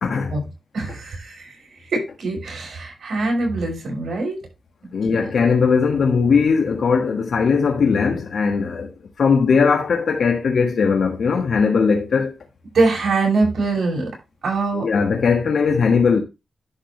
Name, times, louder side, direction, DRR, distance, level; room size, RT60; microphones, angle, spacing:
voice 1, 0.0-0.4 4.9-8.9 9.2-12.4 14.7-16.2, left 5 dB, 75° left, 1.5 m, -19 dB
voice 2, 0.7-1.5 1.9-4.4 5.1-5.2 12.7-14.1 14.4-14.9, right 3 dB, 75° right, 6.0 m, -22 dB
11.0 x 6.2 x 3.2 m
cardioid pair, 85°, 0 cm